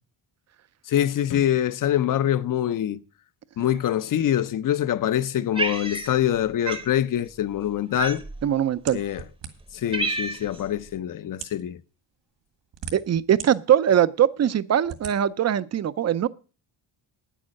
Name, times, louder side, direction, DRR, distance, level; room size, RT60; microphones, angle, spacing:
voice 1, 0.9-3.0 3.6-8.2 8.9-9.2 9.7-11.8, left 11 dB, 45° left, 0.6 m, -24 dB
Cat, 5.6-6.4 6.7-6.9 8.0-8.5 9.2-9.3 9.6-10.6, right 3 dB, 10° right, 0.8 m, -29 dB
voice 2, 8.4-9.0 12.9-16.3, right 10 dB, 40° right, 0.5 m, -21 dB
sound 1, 8.9-9.8 10.6-10.7 11.3-11.6 12.4-13.5 14.0-14.1 14.9-15.2, right 8 dB, 75° right, 1.9 m, -38 dB
9.8 x 8.5 x 6.3 m
wide cardioid pair, 170°, 44 cm